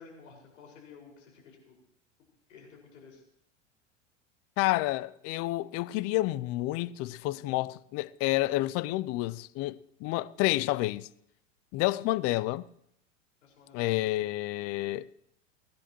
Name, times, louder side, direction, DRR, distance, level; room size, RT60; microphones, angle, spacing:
voice 1, 0.0-1.8 2.5-3.2 13.4-14.2, left 5 dB, 75° left, 5.3 m, -53 dB
voice 2, 4.6-11.1 11.7-12.6 13.7-15.1, left 18 dB, 40° left, 0.5 m, -29 dB
29.0 x 10.5 x 3.0 m
hypercardioid pair, 95°, 38 cm